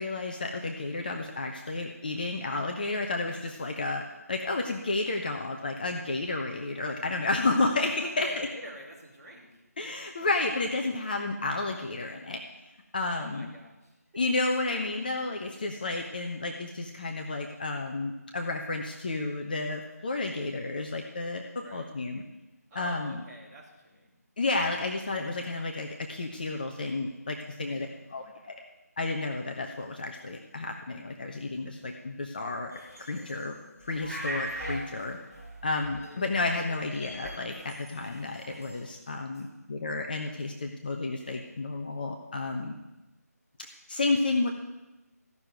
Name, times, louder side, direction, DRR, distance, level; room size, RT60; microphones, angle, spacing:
voice 1, 0.0-8.5 9.8-12.4 12.9-13.5 14.2-22.2 22.7-23.2 24.4-27.9 28.1-28.6 29.0-32.8 33.1-33.6 33.8-35.2 35.6-42.7 43.6-44.5, left 3 dB, 30° left, 2 dB, 1.0 m, -31 dB
voice 2, 8.0-9.6 13.0-13.9 21.6-21.9 22.7-24.2 27.6-27.9 39.3-39.4, right 1 dB, 15° right, -8 dB, 3.0 m, -46 dB
sound 1, 32.7-33.5 33.8-36.4 36.6-38.8, right 1 dB, 5° left, 2.6 m, -41 dB
15.0 x 6.7 x 9.2 m, 1.0 s
figure-of-eight pair, 160°, 9 cm